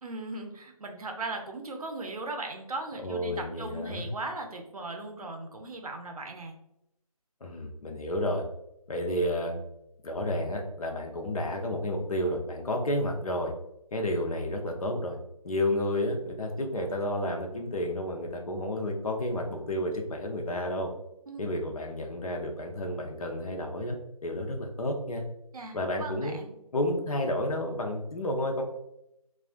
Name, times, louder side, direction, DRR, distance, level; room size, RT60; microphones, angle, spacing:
voice 1, 0.0-6.6 21.3-21.6 25.5-26.5, right 2 dB, 70° right, 3 dB, 0.6 m, -38 dB
voice 2, 3.0-4.1 7.4-8.4 8.9-9.6 10.0-13.5 13.9-15.2 15.4-20.9 21.4-25.2 25.7-26.4 26.7-28.6, left 1 dB, 65° left, 2 dB, 0.6 m, -31 dB
2.3 x 2.2 x 2.4 m, 0.82 s
figure-of-eight pair, 160°, 19 cm